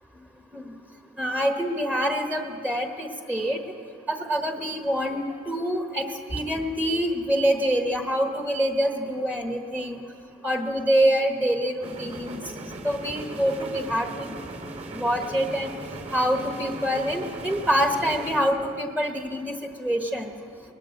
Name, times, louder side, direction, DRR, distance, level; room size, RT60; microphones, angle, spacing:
voice 1, 1.2-3.6 4.1-10.0 10.4-12.4 12.8-14.3 14.9-15.7 16.1-20.3, equal, 10° right, 4 dB, 1.3 m, -26 dB
sound 1, 11.8-18.4, right 2 dB, 40° right, 2.3 m, -38 dB
20.0 x 20.0 x 8.0 m, 2.8 s
head